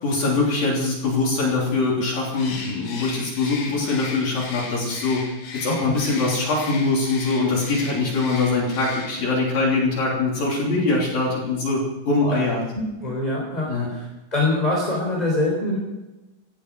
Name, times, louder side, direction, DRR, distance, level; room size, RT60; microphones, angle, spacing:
voice 1, 0.0-5.3 5.5-12.7 13.7-13.9, left 3 dB, 50° left, -3 dB, 4.5 m, -23 dB
Bird, 2.3-9.4, left 4 dB, 80° left, 7.2 m, -37 dB
voice 2, 12.7-14.1 14.3-15.8, left 2 dB, 10° left, -3 dB, 2.8 m, -24 dB
16.5 x 13.5 x 6.3 m, 1.1 s
omnidirectional pair, 5.9 m